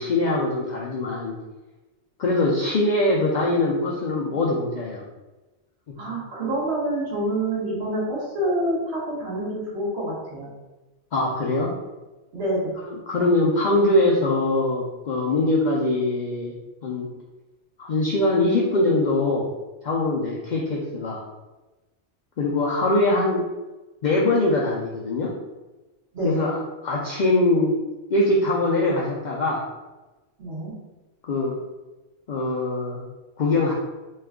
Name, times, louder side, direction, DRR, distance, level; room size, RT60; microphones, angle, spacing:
voice 1, 0.0-1.3 2.2-5.0 5.9-6.2 11.1-11.7 12.9-16.5 16.8-17.1 17.8-19.5 19.8-21.2 22.4-23.4 24.0-25.3 26.2-27.8 28.1-29.6 31.2-31.6 32.3-33.0 33.4-33.7, left 2 dB, 60° left, -3 dB, 0.5 m, -22 dB
voice 2, 6.0-10.5 12.3-12.7 26.1-26.4 30.4-30.7, right 1 dB, 75° right, -8 dB, 1.4 m, -27 dB
3.1 x 2.2 x 3.5 m, 1.1 s
omnidirectional pair, 1.1 m